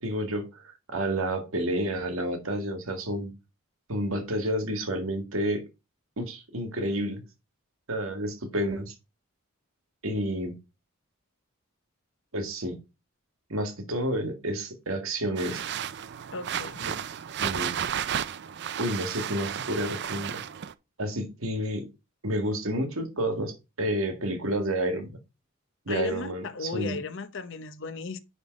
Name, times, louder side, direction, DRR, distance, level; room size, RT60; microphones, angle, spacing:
voice 1, 0.0-3.3 3.9-5.6 6.2-7.2 7.9-8.9 10.0-10.5 12.3-12.8 13.5-15.6 16.8-17.0 17.4-17.8 18.8-20.4 21.0-21.9 22.2-25.2 25.9-27.0, right 1 dB, 75° right, 1.8 m, -30 dB
sound 1, 15.4-20.7, right 9 dB, 55° right, 0.5 m, -33 dB
voice 2, 16.3-16.8 25.9-28.2, left 4 dB, 60° left, 0.8 m, -35 dB
9.9 x 3.5 x 5.1 m
head